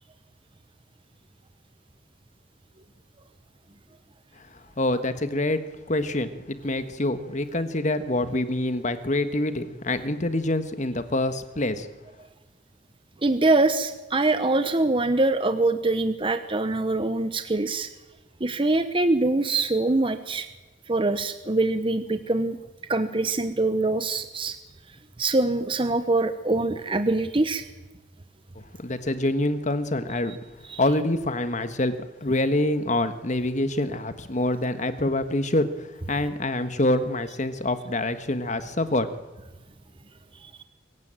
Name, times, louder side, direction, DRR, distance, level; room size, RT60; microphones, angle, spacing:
voice 1, 4.4-5.6 5.9-11.9 28.5-30.4 30.8-31.9 32.2-39.1, left 1 dB, 40° left, 10 dB, 1.4 m, -26 dB
voice 2, 13.2-17.9 18.4-20.5 20.9-22.6 22.9-24.6 25.2-27.6 30.7-30.8 40.4-40.6, right 2 dB, 25° right, 10 dB, 0.9 m, -24 dB
24.0 x 15.5 x 8.9 m, 1.1 s
head